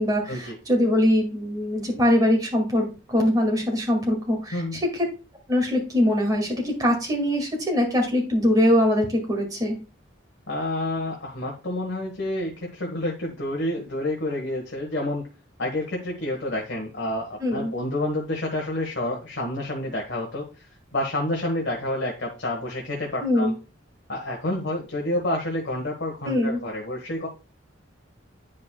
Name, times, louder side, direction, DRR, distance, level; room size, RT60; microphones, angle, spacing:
voice 1, 0.0-4.8 5.5-9.8 17.4-17.7 23.2-23.5 26.2-26.6, left 1 dB, 20° right, 0 dB, 2.0 m, -22 dB
voice 2, 10.5-15.2 15.6-23.5 24.1-27.3, left 1 dB, 65° left, 0 dB, 1.3 m, -29 dB
9.8 x 5.2 x 2.3 m, 0.31 s
head